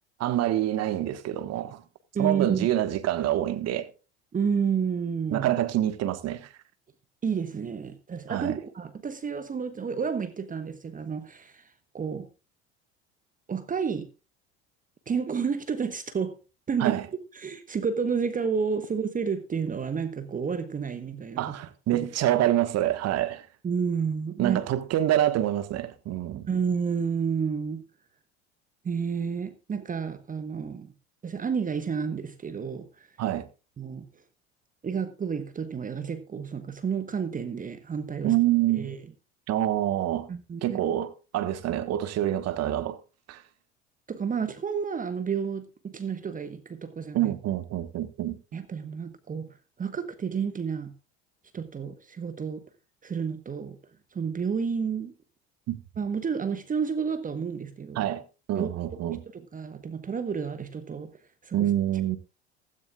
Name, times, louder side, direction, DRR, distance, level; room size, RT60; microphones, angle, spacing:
voice 1, 0.2-1.8 2.2-3.9 5.3-6.5 8.3-8.6 16.8-17.0 21.4-23.5 24.4-26.5 33.2-33.5 38.2-38.9 39.5-40.3 40.6-43.0 43.3-43.4 47.1-48.4 55.7-55.8 57.9-58.2 58.5-59.2 61.5-62.2, right 13 dB, 50° right, 1.4 m, -26 dB
voice 2, 2.1-2.7 4.3-5.5 7.2-11.7 11.9-12.3 13.5-14.1 15.1-16.4 16.7-17.0 17.3-21.6 21.9-22.1 23.6-24.6 26.5-27.9 28.8-30.9 31.2-33.1 33.8-34.0 34.8-38.3 38.7-39.0 40.3-40.8 44.1-47.3 48.5-49.5 49.8-50.9 51.5-52.6 53.0-53.8 54.1-55.1 56.0-58.1 58.5-58.7 59.3-61.1 61.4-61.7, right 6 dB, 25° right, 1.2 m, -30 dB
16.0 x 13.5 x 2.4 m
hypercardioid pair, 70°, 33 cm